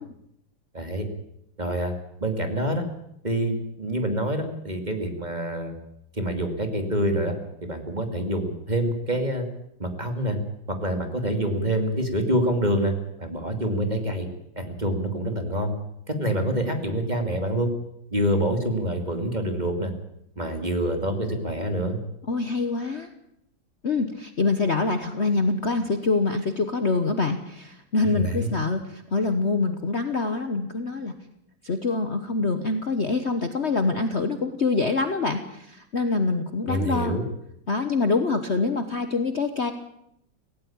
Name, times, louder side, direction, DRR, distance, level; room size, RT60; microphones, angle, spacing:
voice 1, 0.7-1.1 1.6-1.9 2.2-2.8 3.2-5.7 6.1-7.3 7.6-9.5 9.8-10.4 10.8-14.3 14.6-15.7 16.1-17.7 18.1-19.9 20.4-22.0 28.0-28.5 36.7-37.2, right 1 dB, 20° right, 5 dB, 2.5 m, -26 dB
voice 2, 22.3-23.1 23.8-31.1 31.6-37.2 37.7-39.7, left 3 dB, 40° left, 8 dB, 1.3 m, -25 dB
17.5 x 17.0 x 8.7 m, 0.77 s
omnidirectional pair, 2.1 m